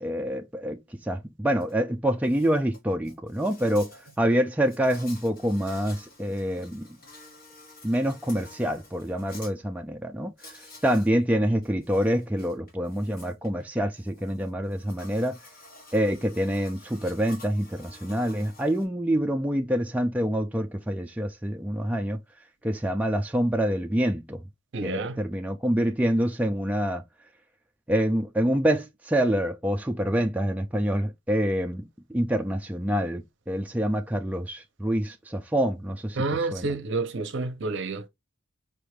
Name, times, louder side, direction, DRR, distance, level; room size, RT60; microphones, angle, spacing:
voice 1, 0.0-3.9 4.2-7.0 7.8-10.3 10.8-15.4 15.9-22.2 22.6-24.4 24.8-27.0 27.9-36.2 36.5-36.7, equal, 5° right, 0.3 m, -26 dB
Insect, 1.6-1.7 2.1-9.5 10.4-11.1 11.5-18.9, left 2 dB, 45° left, 1.7 m, -50 dB
voice 2, 24.7-25.2 36.2-38.1, right 3 dB, 60° right, 0.7 m, -29 dB
5.0 x 2.5 x 3.2 m
head